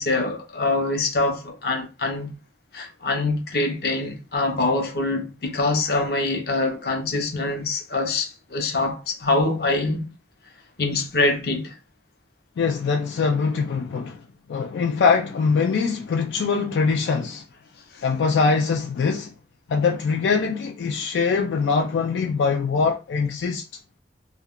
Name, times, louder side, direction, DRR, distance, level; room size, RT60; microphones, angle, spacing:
voice 1, 0.0-2.4 2.7-10.1 10.8-11.8 17.9-18.0, left 2 dB, 60° left, 0.7 m, -24 dB
voice 2, 12.6-14.2 14.5-17.4 18.0-19.3 19.7-23.6, left 5 dB, 85° left, 0.3 m, -22 dB
2.3 x 2.2 x 3.5 m
head